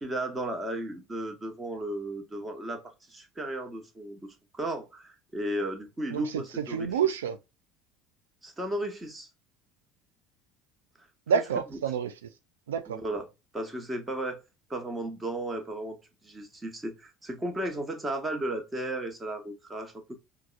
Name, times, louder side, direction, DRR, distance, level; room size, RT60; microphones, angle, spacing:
voice 1, 0.0-6.9 8.4-9.3 12.9-13.2 13.5-14.4 14.7-16.0 16.2-20.2, right 1 dB, 20° right, 1.1 m, -34 dB
voice 2, 6.1-7.4 11.3-12.1 12.7-13.0, right 7 dB, 80° right, 0.3 m, -28 dB
4.6 x 2.2 x 2.3 m
figure-of-eight pair, 65°, 0 cm